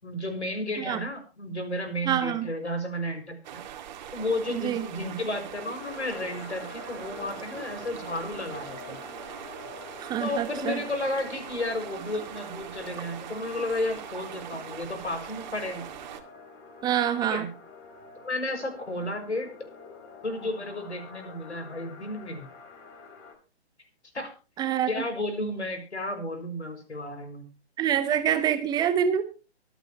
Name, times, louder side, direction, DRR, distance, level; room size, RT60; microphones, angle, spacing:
voice 1, 0.0-3.6 4.1-9.0 10.2-15.9 17.2-17.5 18.2-19.5 20.2-22.5 24.1-24.3 24.9-27.5, left 1 dB, 80° left, 7 dB, 5.8 m, -32 dB
voice 2, 2.1-2.5 4.5-4.8 10.0-10.8 16.8-17.4 24.6-24.9 27.8-29.2, right 9 dB, 10° right, 10 dB, 0.9 m, -26 dB
sound 1, 3.4-16.2, right 10 dB, 40° right, 2.4 m, -42 dB
sound 2, 5.8-23.3, left 4 dB, 25° left, 3.6 m, -46 dB
24.0 x 9.2 x 2.9 m, 0.33 s
figure-of-eight pair, 135°, 33 cm